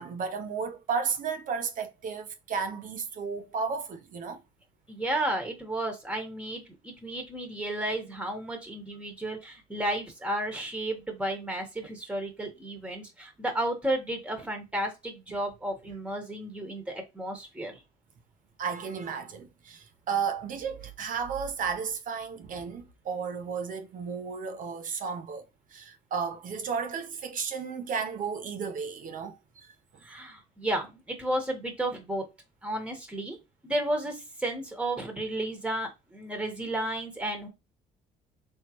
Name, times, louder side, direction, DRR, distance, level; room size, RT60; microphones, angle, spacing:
voice 1, 0.0-4.4 18.6-25.4 25.7-29.7, right 6 dB, 50° right, 0.9 m, -33 dB
voice 2, 4.9-17.8 30.0-32.3 32.6-33.4 33.6-37.5, right 1 dB, 5° right, 1.3 m, -33 dB
4.5 x 3.2 x 3.0 m
cardioid pair, 110°, 17 cm